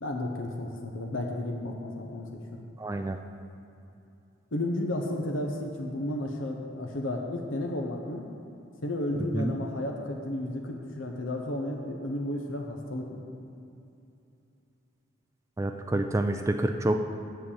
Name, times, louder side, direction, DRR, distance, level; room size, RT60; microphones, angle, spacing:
voice 1, 0.0-2.6 4.5-8.3 8.8-13.2, left 1 dB, 85° left, 1 dB, 0.9 m, -33 dB
voice 2, 2.8-3.2 9.3-9.5 15.6-17.0, right 1 dB, 15° right, 6 dB, 0.3 m, -27 dB
7.8 x 6.6 x 7.2 m, 2.7 s
head